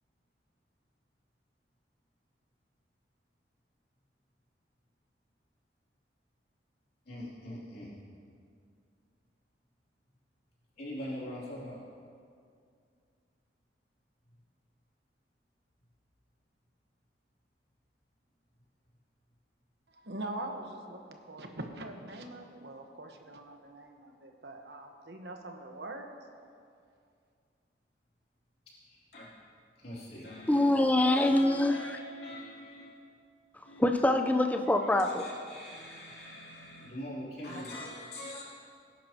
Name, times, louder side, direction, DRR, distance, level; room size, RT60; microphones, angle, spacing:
voice 1, 7.0-7.9 10.8-11.8 28.8-29.3 29.8-30.7 31.1-32.9 33.6-34.0 34.8-38.4, left 1 dB, 60° left, -7 dB, 3.1 m, -43 dB
voice 2, 19.9-21.0 21.3-26.1, right 1 dB, 70° right, 3 dB, 1.2 m, -43 dB
voice 3, 30.5-32.0 33.8-35.2, left 1 dB, 10° left, 4 dB, 0.6 m, -25 dB
20.5 x 11.0 x 3.0 m, 2.3 s
head